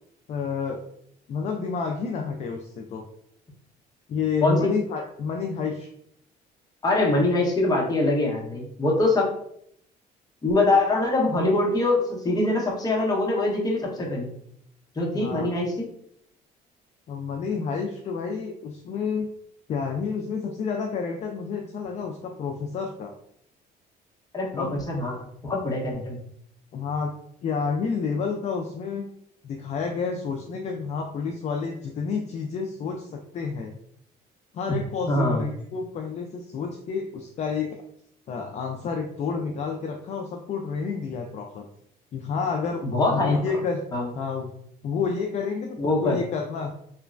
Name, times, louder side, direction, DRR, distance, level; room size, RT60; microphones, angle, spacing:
voice 1, 0.3-0.8 1.3-3.0 4.1-5.9 15.1-15.5 17.1-19.3 19.7-23.1 24.5-24.8 26.7-27.1 27.4-29.1 29.4-33.7 34.5-37.8 38.3-41.6 42.1-42.9 43.1-43.8 44.1-44.5 44.8-46.7, left 5 dB, 45° left, 2 dB, 0.4 m, -29 dB
voice 2, 6.8-9.3 10.4-14.3 14.9-15.8 24.3-25.2 25.4-26.2 35.1-35.5 42.8-43.4 43.9-44.1 45.8-46.2, left 2 dB, 25° left, -2 dB, 0.9 m, -23 dB
3.0 x 2.1 x 2.4 m, 0.70 s
cardioid pair, 110°, 17 cm